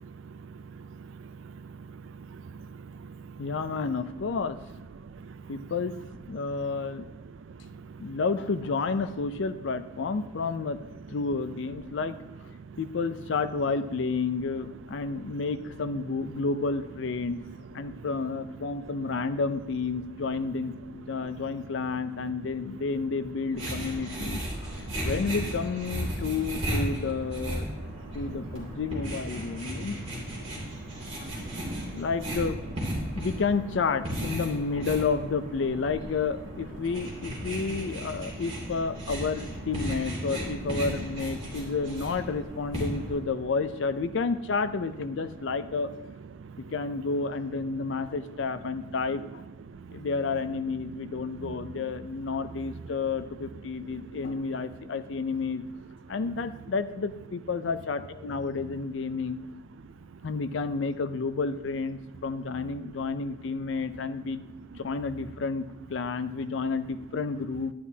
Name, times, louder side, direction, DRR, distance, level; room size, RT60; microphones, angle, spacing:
voice 1, 0.0-3.4 5.2-5.4 7.7-8.0 17.9-18.0 24.9-25.1 29.8-29.9 30.5-32.0 46.4-46.7 49.9-50.0 51.4-51.5, right 5 dB, 80° right, 0.4 m, -45 dB
voice 2, 3.4-4.6 5.5-6.0 6.3-7.1 8.0-10.8 11.1-12.2 12.8-17.4 17.7-27.7 28.1-30.0 31.2-31.4 31.9-32.6 33.2-45.9 46.6-49.4 49.9-55.6 56.1-59.4 60.2-64.5 64.8-67.7, left 4 dB, 70° left, 0.4 m, -30 dB
sound 1, 23.5-43.2, equal, 35° right, 2.7 m, -35 dB
11.0 x 10.0 x 2.7 m
head